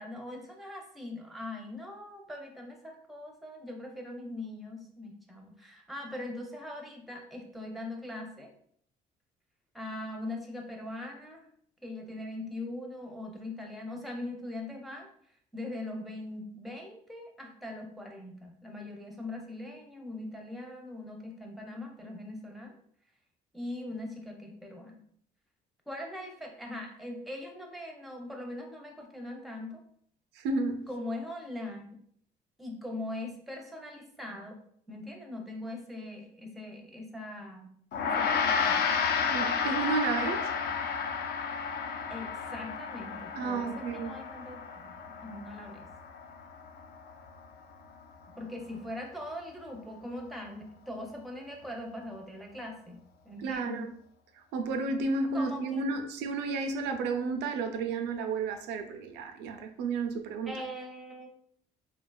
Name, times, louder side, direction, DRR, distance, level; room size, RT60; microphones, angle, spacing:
voice 1, 0.0-8.5 9.7-11.4 11.8-15.1 15.5-22.7 23.5-25.0 25.9-29.8 30.9-31.9 32.6-34.6 34.9-37.7 38.0-38.8 40.2-40.4 42.1-44.9 45.2-45.8 48.4-53.0 53.2-53.9 55.3-55.8 60.5-61.3, left 1 dB, ahead, 0.5 m, -41 dB
voice 2, 30.3-30.9 39.3-40.4 43.3-44.1 53.4-53.9 54.3-60.6, right 4 dB, 85° right, 0.4 m, -32 dB
Gong, 37.9-47.5, left 6 dB, 70° left, 0.4 m, -32 dB
2.7 x 2.2 x 2.3 m
cardioid pair, 110°, 17 cm